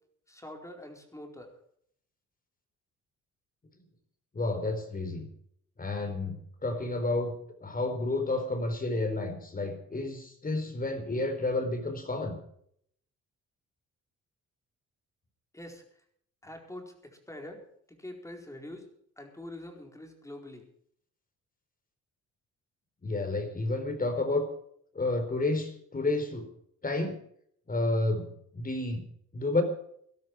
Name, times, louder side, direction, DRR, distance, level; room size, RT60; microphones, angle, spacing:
voice 1, 0.3-1.5 15.5-15.8 16.4-17.6 17.9-18.9 19.2-20.6, left 1 dB, 10° left, 3 dB, 4.3 m, -45 dB
voice 2, 4.3-5.3 5.8-7.3 7.6-12.4 23.0-24.5 24.9-26.5 26.8-27.2 27.7-29.0 29.3-29.6, left 2 dB, 30° left, 8 dB, 4.1 m, -30 dB
18.0 x 12.0 x 4.8 m, 0.66 s
cardioid pair, 90°, 30 cm